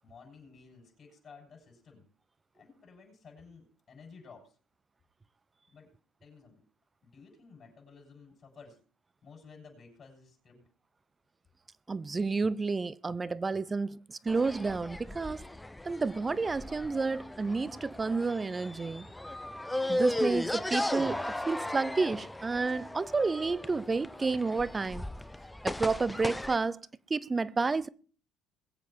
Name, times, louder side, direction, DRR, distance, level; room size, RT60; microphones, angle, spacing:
voice 1, 0.0-2.1 2.5-4.6 5.7-5.9 6.2-6.7 7.0-8.8 9.2-10.7, left 5 dB, 45° left, 7.3 m, -54 dB
voice 2, 11.9-15.4 15.8-19.1 19.9-25.0 25.6-26.8 27.1-27.9, right 4 dB, 25° right, 0.7 m, -30 dB
sound 1, 14.3-26.6, left 1 dB, 10° left, 0.8 m, -36 dB
22.0 x 8.1 x 4.5 m
hypercardioid pair, 70°, 0 cm